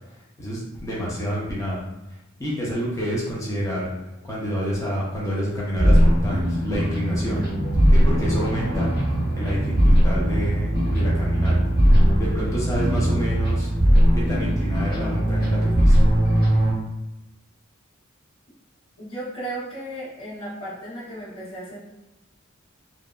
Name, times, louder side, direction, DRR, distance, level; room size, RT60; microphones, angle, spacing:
voice 1, 0.4-1.8 2.4-3.9 4.2-7.4 7.9-8.9 9.4-11.5 12.2-13.7 14.1-15.9, equal, 15° left, -6 dB, 0.5 m, -28 dB
sound 1, 5.7-16.7, equal, 45° left, 1.1 m, -19 dB
voice 2, 19.0-21.8, right 1 dB, 65° left, -12 dB, 1.2 m, -35 dB
2.7 x 2.2 x 2.2 m, 0.99 s
head